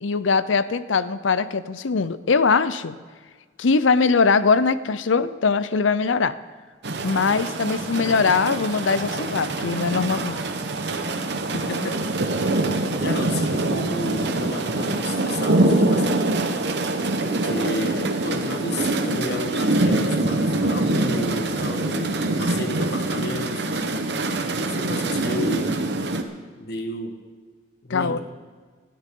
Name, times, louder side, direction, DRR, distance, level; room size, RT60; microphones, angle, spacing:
voice 1, 0.0-3.0 3.6-6.3 7.0-10.4 27.9-28.2, left 4 dB, 85° left, 15 dB, 0.6 m, -21 dB
sound 1, 6.8-26.2, right 2 dB, 60° right, 1.0 m, -24 dB
voice 2, 11.5-12.1 13.0-16.5 17.2-23.6 24.6-25.8 26.6-27.2 27.8-28.2, left 2 dB, 55° left, 6 dB, 1.4 m, -32 dB
20.0 x 13.0 x 3.8 m, 1.5 s
head